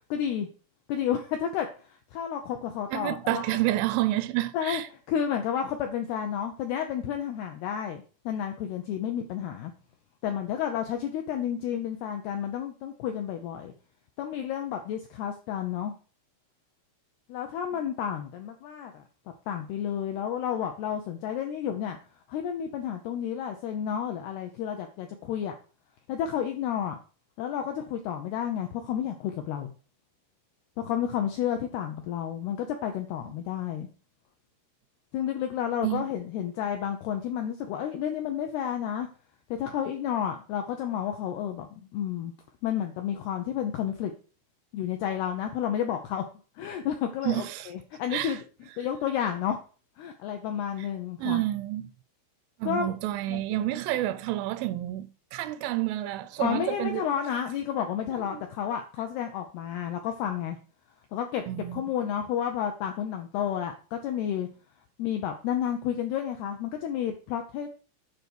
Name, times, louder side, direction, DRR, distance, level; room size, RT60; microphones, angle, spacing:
voice 1, 0.1-0.5 0.9-3.4 4.5-4.8 5.1-9.7 10.2-13.7 14.2-15.9 17.3-19.0 19.5-22.0 22.3-25.5 26.1-27.0 27.4-29.7 30.8-33.9 35.1-39.1 39.5-42.3 42.6-44.1 44.7-46.2 46.6-48.4 48.8-49.6 50.0-51.4 52.6-52.9 53.3-53.6 56.4-60.6 61.1-61.4 61.7-64.5 65.0-67.8, left 9 dB, 80° left, 2.3 m, -31 dB
voice 2, 2.9-4.9 35.8-36.1 47.2-47.7 48.1-48.4 50.8-50.9 51.2-51.9 52.6-57.1 58.3-58.4 61.5-61.8, right 15 dB, 85° right, 2.9 m, -29 dB
9.8 x 5.2 x 6.1 m
omnidirectional pair, 5.7 m